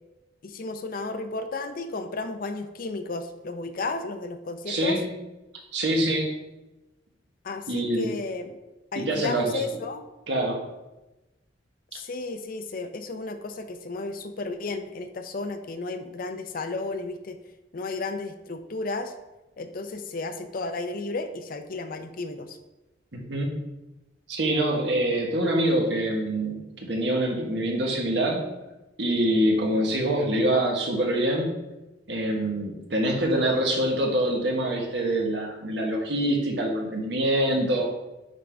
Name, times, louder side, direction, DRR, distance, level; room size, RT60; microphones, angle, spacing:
voice 1, 0.4-5.0 7.4-8.6 8.9-10.0 11.9-17.4 17.7-19.1 19.6-22.6, left 3 dB, 50° left, 8 dB, 0.5 m, -33 dB
voice 2, 4.7-5.1 5.7-6.4 7.7-8.1 8.9-9.5 10.3-10.6 23.1-23.6 24.3-28.4 29.0-31.6 32.1-37.9, right 1 dB, 70° right, 0 dB, 1.3 m, -25 dB
9.2 x 3.7 x 3.4 m, 1.0 s
head